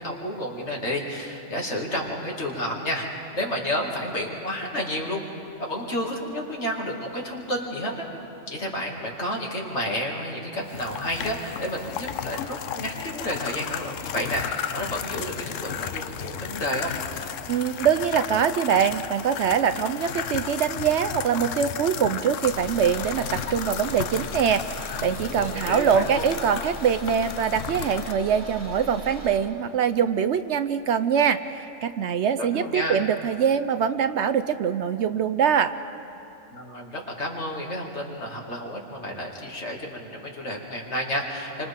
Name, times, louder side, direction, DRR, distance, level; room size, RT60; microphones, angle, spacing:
voice 1, 0.0-3.1 3.3-5.2 5.6-8.1 8.5-16.9 25.3-26.3 32.4-33.0 36.5-41.7, equal, 55° left, -1 dB, 2.7 m, -31 dB
sound 1, 10.7-28.1, left 9 dB, 70° left, 1.0 m, -34 dB
voice 2, 17.5-35.7, right 7 dB, 65° right, 11 dB, 0.8 m, -23 dB
Car / Engine, 22.4-29.5, equal, 85° left, 5.7 m, -40 dB
29.5 x 25.0 x 3.7 m, 2.9 s
omnidirectional pair, 1.4 m